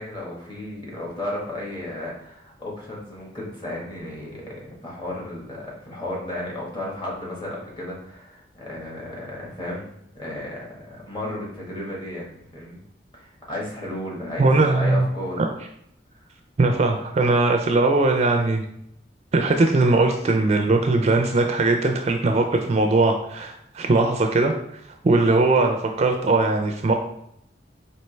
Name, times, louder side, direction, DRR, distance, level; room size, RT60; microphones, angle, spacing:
voice 1, 0.0-9.9 10.1-12.8 13.1-15.4, left 1 dB, 25° left, -3 dB, 1.3 m, -34 dB
voice 2, 14.4-15.1 15.4-15.5 16.6-18.6 19.3-24.5 25.0-26.9, right 2 dB, 35° right, 4 dB, 0.4 m, -20 dB
4.4 x 2.8 x 3.1 m, 0.74 s
head